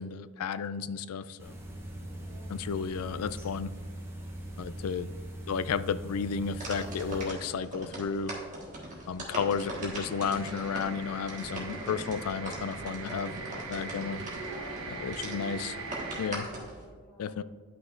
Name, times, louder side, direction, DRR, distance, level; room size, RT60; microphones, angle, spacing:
voice 1, 0.0-1.6 2.5-3.7 4.6-5.1 5.5-8.3 9.1-14.2 15.0-15.7 16.2-16.5 17.2-17.4, left 6 dB, 80° left, 14 dB, 0.3 m, -33 dB
sound 1, 1.4-7.3, right 1 dB, 10° right, 0.8 m, -41 dB
voice 2, 2.1-2.6 6.6-7.1 14.5-17.4, left 1 dB, 5° left, -7 dB, 1.8 m, -53 dB
sound 2, 6.4-16.8, right 1 dB, 35° right, 1.5 m, -41 dB
sound 3, 9.5-16.3, right 3 dB, 65° right, 0.9 m, -41 dB
10.0 x 5.9 x 2.5 m, 1.5 s
head